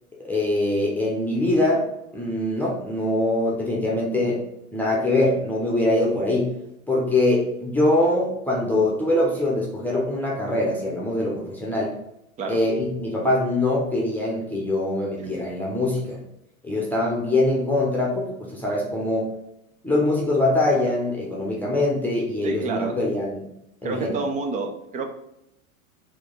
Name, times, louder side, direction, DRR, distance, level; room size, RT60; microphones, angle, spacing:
voice 1, 0.2-1.9 2.1-4.4 4.7-6.5 6.9-11.9 12.5-16.2 16.6-19.3 19.8-23.5 23.8-24.1, left 1 dB, 5° left, -3 dB, 0.8 m, -23 dB
voice 2, 22.4-22.9 23.8-25.1, right 3 dB, 20° right, 4 dB, 0.4 m, -28 dB
4.7 x 3.0 x 3.8 m, 0.82 s
figure-of-eight pair, 90°, 43 cm